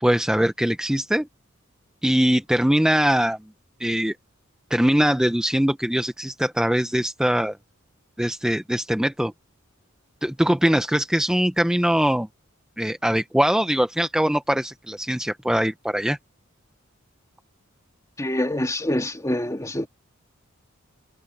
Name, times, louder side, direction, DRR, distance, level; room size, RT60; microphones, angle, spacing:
voice 1, 0.0-1.3 2.0-3.4 3.8-4.2 4.7-7.6 8.2-9.3 10.2-12.3 12.8-16.2, equal, 5° right, 0.6 m, -22 dB
voice 2, 18.2-19.9, left 1 dB, 15° left, 2.4 m, -25 dB
head